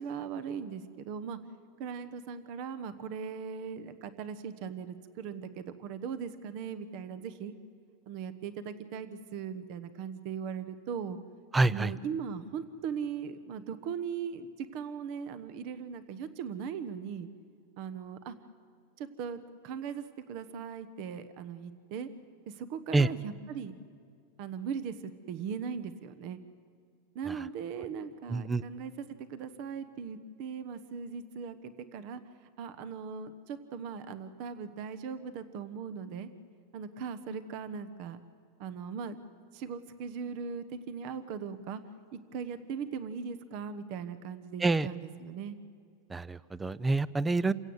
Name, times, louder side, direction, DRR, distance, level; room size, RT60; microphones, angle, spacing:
voice 1, 0.0-1.4 1.8-7.5 8.1-11.2 11.7-17.3 17.8-18.3 19.0-22.1 22.5-23.7 24.4-26.4 27.1-32.2 32.6-36.3 36.7-38.2 38.6-39.2 39.5-41.8 42.1-45.6, right 6 dB, 50° right, 12 dB, 1.1 m, -39 dB
voice 2, 11.5-11.9 22.9-23.1 27.3-27.4 28.3-28.6 44.6-44.9 46.1-47.5, right 3 dB, 10° right, 19 dB, 0.5 m, -27 dB
28.0 x 16.5 x 8.0 m, 2.2 s
supercardioid pair, 140°, 0 cm